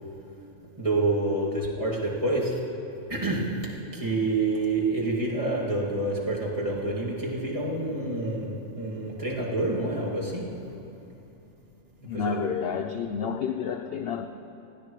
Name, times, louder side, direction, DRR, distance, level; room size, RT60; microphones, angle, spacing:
voice 1, 0.8-2.7 3.1-10.7 12.1-12.3, right 2 dB, 25° right, -5 dB, 2.1 m, -28 dB
voice 2, 12.0-14.3, left 7 dB, 65° left, 7 dB, 0.6 m, -30 dB
20.5 x 15.5 x 3.1 m, 2.9 s
omnidirectional pair, 1.5 m